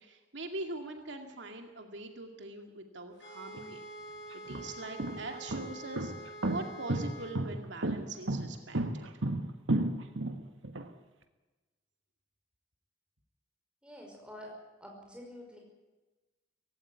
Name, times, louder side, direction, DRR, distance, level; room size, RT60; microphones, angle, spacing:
voice 1, 0.0-3.8 4.5-9.1, right 2 dB, 75° right, 4 dB, 2.2 m, -43 dB
sound 1, 3.2-7.4, right 1 dB, 75° left, 7.3 m, -47 dB
sound 2, 3.5-3.6 4.3-10.8, right 1 dB, 90° right, 1.7 m, -32 dB
voice 2, 13.8-14.5 14.8-15.6, left 1 dB, 5° right, 0 dB, 5.3 m, -48 dB
17.5 x 16.5 x 9.8 m, 1.2 s
head